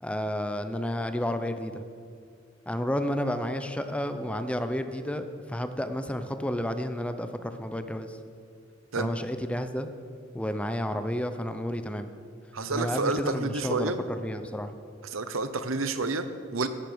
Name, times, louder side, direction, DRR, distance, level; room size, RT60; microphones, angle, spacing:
voice 1, 0.0-1.8 2.7-8.2 8.9-9.9 10.3-12.1 12.7-14.7, equal, 5° left, 9 dB, 0.7 m, -31 dB
voice 2, 12.5-14.0 15.0-16.7, right 3 dB, 75° right, 10 dB, 0.9 m, -29 dB
15.0 x 11.0 x 5.2 m, 2.3 s
head